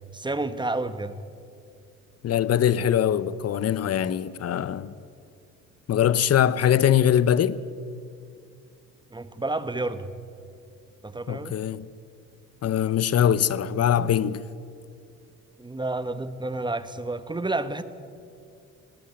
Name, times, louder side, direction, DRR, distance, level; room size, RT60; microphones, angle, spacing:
voice 1, 0.1-1.2 9.1-10.1 11.0-11.6 15.6-17.8, right 2 dB, 15° right, 1.3 m, -30 dB
voice 2, 2.2-4.9 5.9-7.6 11.3-11.9 12.6-14.4, left 10 dB, 55° left, 0.9 m, -22 dB
20.0 x 17.0 x 8.6 m
cardioid pair, 90°, 30 cm